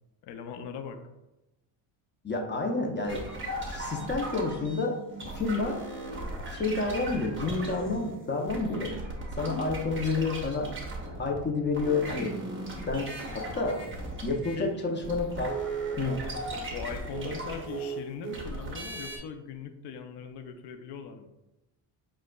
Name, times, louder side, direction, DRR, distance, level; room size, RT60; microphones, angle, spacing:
voice 1, 0.2-1.0 14.6-15.0 16.7-21.3, left 6 dB, 60° left, 6 dB, 0.6 m, -40 dB
voice 2, 2.2-3.2 3.7-4.9 5.3-5.8 6.5-8.9 9.3-10.7 11.2-12.3 12.9-13.8 14.2-15.5 16.0-16.2, left 3 dB, 25° left, 1 dB, 0.7 m, -29 dB
sound 1, 3.1-11.4 11.7-19.2, right 2 dB, 25° right, 1.0 m, -37 dB
7.3 x 2.5 x 2.3 m, 0.98 s
cardioid pair, 95°, 45 cm